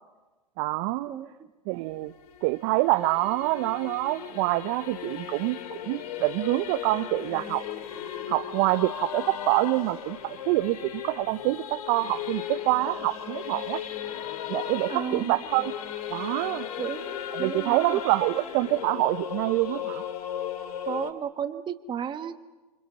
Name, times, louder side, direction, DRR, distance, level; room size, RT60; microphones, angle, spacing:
voice 1, 0.6-1.1 1.7-2.1 2.4-7.6 8.3-13.8 14.5-15.7 16.1-16.7 17.3-20.0, right 19 dB, 45° right, 10 dB, 0.7 m, -26 dB
voice 2, 1.1-1.5 14.9-15.3 16.8-17.0 17.4-18.0 20.9-22.3, right 8 dB, 20° right, 9 dB, 1.5 m, -33 dB
Singing / Musical instrument, 1.7-21.1, left 10 dB, 65° left, 2.7 m, -36 dB
27.5 x 25.0 x 7.0 m, 1.2 s
hypercardioid pair, 115°, 21 cm